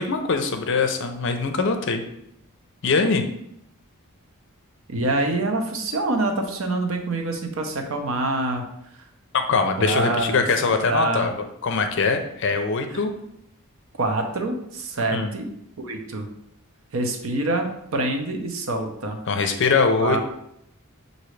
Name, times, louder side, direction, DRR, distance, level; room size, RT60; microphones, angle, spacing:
voice 1, 0.0-2.0 2.8-3.2 9.3-13.1 15.1-15.3 19.3-20.2, left 4 dB, 55° left, 6 dB, 0.5 m, -22 dB
voice 2, 4.9-8.6 9.8-10.4 10.6-11.3 12.9-13.0 14.0-15.5 15.8-16.3 16.9-19.2 20.0-20.2, right 2 dB, 60° right, 4 dB, 0.7 m, -25 dB
6.0 x 2.6 x 3.2 m, 0.77 s
head